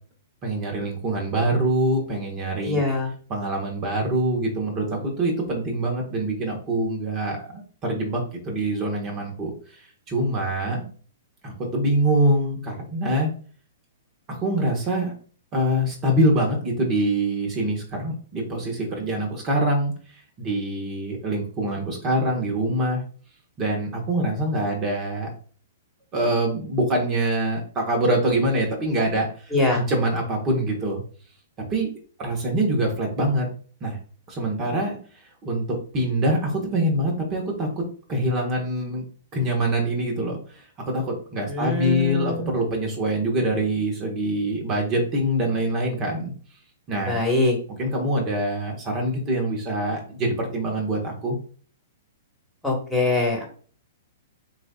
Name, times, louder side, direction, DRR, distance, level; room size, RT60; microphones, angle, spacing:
voice 1, 0.4-2.8 3.3-10.9 11.4-13.3 14.3-15.1 15.5-23.0 23.6-25.3 26.1-31.0 31.7-31.9 32.2-33.5 33.8-34.0 34.3-35.6 35.9-37.8 38.1-39.0 39.3-46.3 46.9-47.2 47.8-51.4, right 1 dB, 30° right, 1 dB, 1.3 m, -24 dB
voice 2, 2.6-3.1 29.5-29.8 41.5-42.5 47.1-47.6 52.6-53.4, left 2 dB, ahead, -3 dB, 1.7 m, -23 dB
7.7 x 2.6 x 2.4 m, 0.42 s
hypercardioid pair, 120°, 0 cm